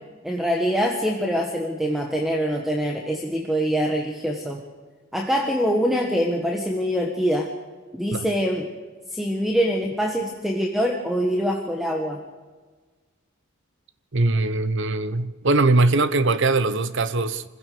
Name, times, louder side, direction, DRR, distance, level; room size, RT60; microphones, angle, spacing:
voice 1, 0.2-4.6 5.1-7.5 7.9-8.7 9.1-12.2, equal, ahead, 1.6 m, -24 dB
voice 2, 14.1-17.4, right 2 dB, 55° right, 1.0 m, -21 dB
26.0 x 15.5 x 7.0 m
head